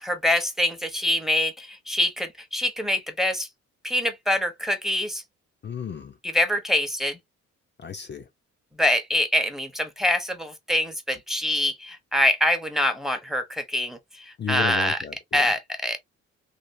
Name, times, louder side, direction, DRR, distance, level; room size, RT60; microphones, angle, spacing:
voice 1, 0.0-3.5 3.8-5.2 6.2-7.2 8.8-15.0 15.3-16.0, left 1 dB, ahead, 0.8 m, -25 dB
voice 2, 5.6-6.2 7.8-8.3 14.4-15.5, left 7 dB, 35° left, 0.5 m, -33 dB
3.4 x 2.5 x 2.5 m
cardioid pair, 90°, 30 cm